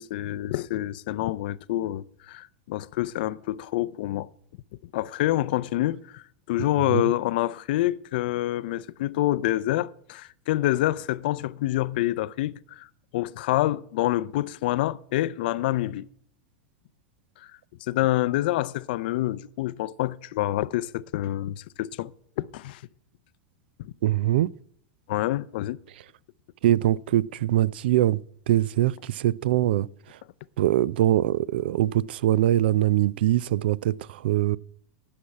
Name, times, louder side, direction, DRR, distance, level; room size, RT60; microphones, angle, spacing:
voice 1, 0.0-4.3 4.9-12.9 13.1-16.1 17.4-17.5 17.9-22.1 22.4-22.8 25.1-25.8, left 15 dB, 65° left, 0.5 m, -27 dB
voice 2, 24.0-24.5 26.6-28.2 28.5-29.9 30.6-33.9 34.2-34.6, right 13 dB, 75° right, 0.3 m, -22 dB
10.0 x 5.8 x 8.4 m
supercardioid pair, 130°, 5 cm